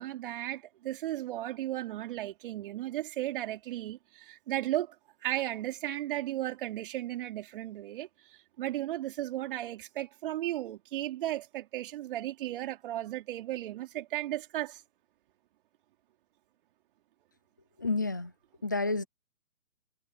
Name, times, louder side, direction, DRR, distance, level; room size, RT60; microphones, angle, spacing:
voice 1, 0.0-4.9 5.2-14.8, right 14 dB, 35° right, 4.6 m, -35 dB
voice 2, 17.8-18.3 18.6-19.0, left 3 dB, 15° left, 0.5 m, -29 dB
hypercardioid pair, 150°, 43 cm